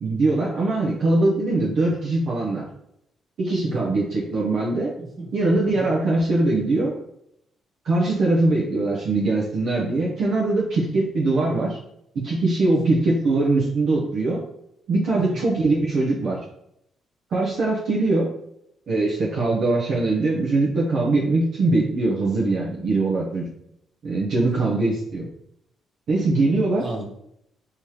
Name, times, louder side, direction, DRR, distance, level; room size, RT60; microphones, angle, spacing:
voice 1, 0.0-2.6 3.4-4.9 5.3-6.9 7.8-11.8 12.1-14.4 14.9-16.4 17.3-18.3 18.9-23.5 24.0-25.3 26.1-26.9, right 2 dB, 65° right, -4 dB, 0.8 m, -22 dB
voice 2, 3.6-3.9 5.0-5.3 5.7-5.9 12.7-13.0 15.1-15.4 24.4-24.7 26.8-27.0, right 2 dB, 40° right, -1 dB, 1.2 m, -32 dB
3.5 x 2.9 x 3.1 m, 0.76 s
cardioid pair, 90°, 0 cm